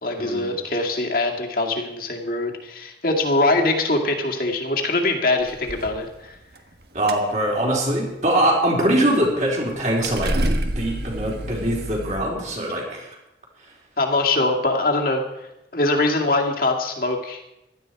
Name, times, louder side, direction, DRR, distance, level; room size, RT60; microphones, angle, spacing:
voice 1, 0.0-6.4 14.0-17.4, left 2 dB, 50° left, 1 dB, 2.2 m, -23 dB
sound 1, 5.4-6.0 6.4-6.8 7.1-7.3 7.6-7.8 9.7-9.8 10.0-12.2, right 1 dB, 60° right, 1.4 m, -27 dB
voice 2, 6.9-10.4 10.8-13.1, right 1 dB, 40° right, -2 dB, 4.1 m, -22 dB
16.5 x 12.5 x 4.7 m, 0.91 s
head